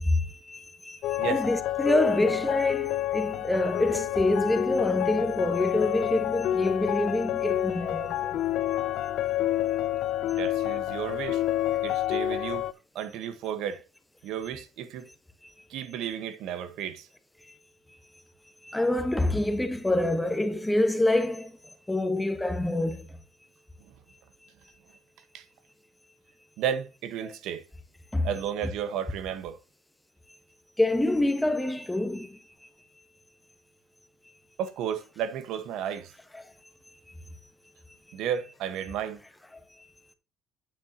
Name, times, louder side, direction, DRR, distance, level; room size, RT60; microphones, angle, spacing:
voice 1, 0.0-8.4 18.6-21.5 21.9-23.0 27.2-27.3 28.1-28.3 30.8-32.4 36.3-36.4, left 1 dB, 5° left, 1.1 m, -26 dB
sound 1, 1.0-12.7, left 12 dB, 65° left, 0.5 m, -28 dB
voice 2, 10.4-11.4 11.8-12.6 12.9-13.8 14.2-15.0 15.7-17.1 25.3-25.4 26.6-27.6 28.2-29.6 34.6-36.1 38.1-39.2, right 9 dB, 75° right, 1.1 m, -33 dB
9.0 x 7.5 x 2.7 m
cardioid pair, 130°, 0 cm